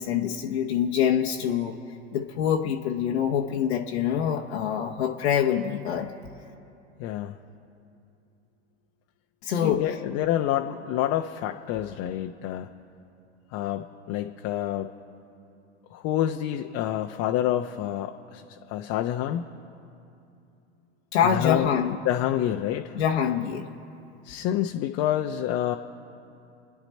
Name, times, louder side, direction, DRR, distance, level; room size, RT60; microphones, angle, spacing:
voice 1, 0.0-1.8 2.1-6.1 9.4-9.8 21.1-22.0 22.9-23.7, left 8 dB, 75° left, 1 dB, 1.0 m, -25 dB
voice 2, 7.0-7.3 9.5-12.7 13.5-14.9 15.9-19.4 21.3-22.9 24.2-25.7, left 12 dB, 50° left, 4 dB, 0.8 m, -28 dB
30.0 x 10.0 x 4.3 m, 2.7 s
hypercardioid pair, 90°, 33 cm